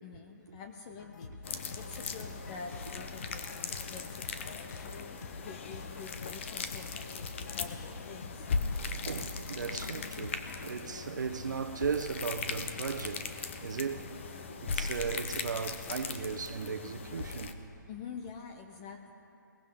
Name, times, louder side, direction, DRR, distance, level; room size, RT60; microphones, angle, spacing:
voice 1, 0.0-1.5 1.7-8.5 17.9-19.1, left 5 dB, 20° left, 0.5 m, -47 dB
sound 1, 1.0-10.7, left 3 dB, 60° left, 1.1 m, -47 dB
sound 2, 1.4-17.5, left 5 dB, 35° left, 0.9 m, -39 dB
voice 2, 9.0-17.6, right 5 dB, 65° right, 1.0 m, -37 dB
21.5 x 18.0 x 3.7 m
hypercardioid pair, 160°, 11 cm